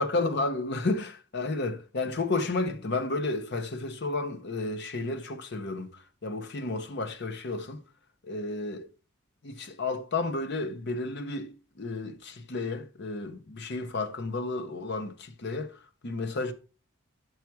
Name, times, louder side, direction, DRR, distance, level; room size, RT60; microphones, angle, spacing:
voice 1, 0.0-7.8 8.2-8.9 9.4-16.5, left 3 dB, 50° left, 0.8 m, -32 dB
5.8 x 4.7 x 4.6 m
head